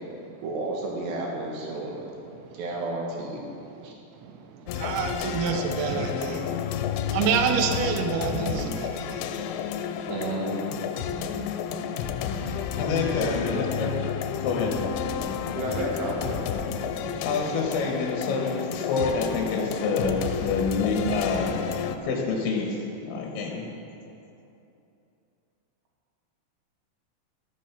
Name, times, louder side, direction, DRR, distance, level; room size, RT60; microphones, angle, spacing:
voice 1, 0.4-2.1 2.5-3.4 3.8-3.9 10.1-10.6 13.1-13.7 15.1-15.2 15.5-16.6, right 2 dB, 65° right, -2 dB, 3.7 m, -32 dB
sound 1, 4.7-22.0, left 8 dB, 85° left, 3.1 m, -31 dB
voice 2, 4.8-6.4 7.1-9.2 11.2-11.4 16.9-17.3, right 7 dB, 85° right, 5 dB, 2.2 m, -27 dB
voice 3, 12.8-13.9 14.4-14.8 17.2-21.5 22.0-23.6, left 4 dB, 65° left, 0 dB, 2.9 m, -27 dB
13.5 x 10.0 x 6.0 m, 2.7 s
omnidirectional pair, 5.6 m